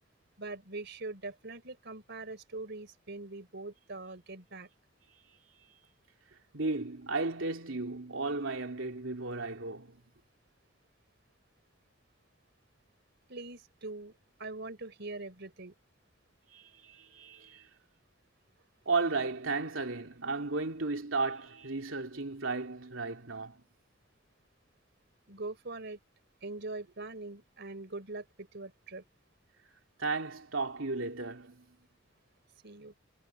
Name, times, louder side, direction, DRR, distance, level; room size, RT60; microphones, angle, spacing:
voice 1, 0.4-4.7 13.3-15.7 25.3-26.0 26.4-29.0 32.6-32.9, right 3 dB, 60° right, 4.1 m, -42 dB
voice 2, 6.5-10.0 16.5-17.7 18.8-23.6 30.0-31.8, right 3 dB, 90° right, 2.9 m, -34 dB
head